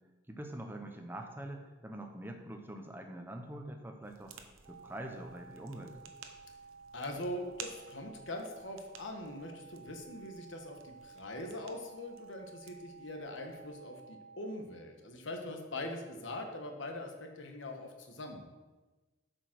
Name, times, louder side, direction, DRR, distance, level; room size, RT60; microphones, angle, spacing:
voice 1, 0.3-4.3 4.7-6.0, right 1 dB, 10° right, 4 dB, 0.8 m, -44 dB
sound 1, 4.0-13.7, right 7 dB, 90° right, 0.9 m, -55 dB
sound 2, 4.6-14.6, right 4 dB, 70° right, 1.8 m, -54 dB
voice 2, 6.9-18.5, left 1 dB, 65° left, 3 dB, 1.3 m, -42 dB
8.2 x 5.2 x 6.0 m, 1.2 s
head